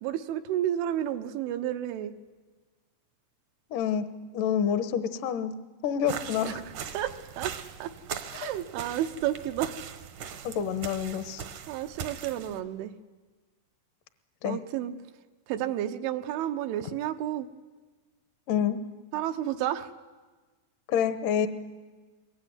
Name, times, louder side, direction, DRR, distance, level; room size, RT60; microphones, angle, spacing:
voice 1, 0.0-2.1 6.4-7.1 7.4-7.5 7.8-7.9 8.3-9.7 11.7-12.9 14.4-14.9 15.5-17.5 19.1-19.9, right 12 dB, 90° right, 7 dB, 3.5 m, -31 dB
voice 2, 3.7-4.0 4.3-5.5 5.8-6.6 8.4-8.5 10.4-11.4 14.4-14.6 18.5-18.8 20.9-21.5, left 8 dB, 70° left, 9 dB, 2.0 m, -27 dB
sound 1, 6.1-12.6, right 8 dB, 70° right, 1.9 m, -40 dB
23.0 x 22.5 x 9.5 m, 1.3 s
omnidirectional pair, 5.4 m